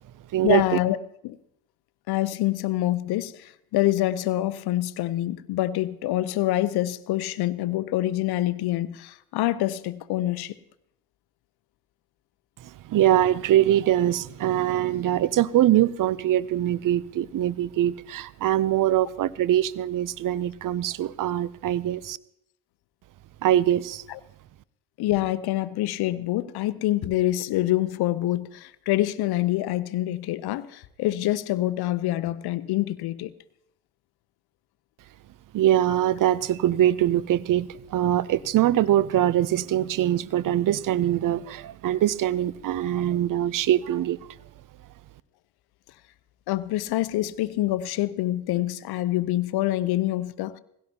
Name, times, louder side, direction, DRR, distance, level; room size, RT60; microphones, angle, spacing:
voice 1, 0.4-1.0 1.2-1.4 2.1-10.5 24.1-24.2 25.0-33.3 46.5-50.6, left 15 dB, 65° left, 0.8 m, -26 dB
voice 2, 12.9-22.2 23.4-24.0 35.5-44.2, right 12 dB, 50° right, 0.6 m, -23 dB
18.0 x 16.5 x 2.9 m
hypercardioid pair, 50°, 41 cm